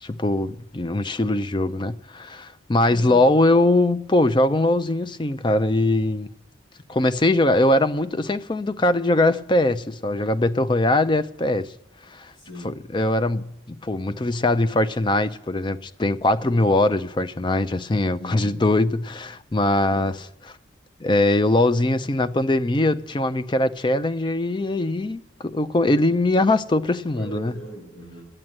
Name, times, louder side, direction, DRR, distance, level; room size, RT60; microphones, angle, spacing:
voice 1, 0.0-6.3 6.9-11.7 12.1-12.3 12.6-20.5 21.0-27.5, left 2 dB, 25° left, 0.4 m, -21 dB
voice 2, 2.9-3.2 12.3-12.8 18.2-18.6 19.9-20.0 27.1-28.2, right 1 dB, 85° left, 5.6 m, -39 dB
11.0 x 8.8 x 7.4 m
head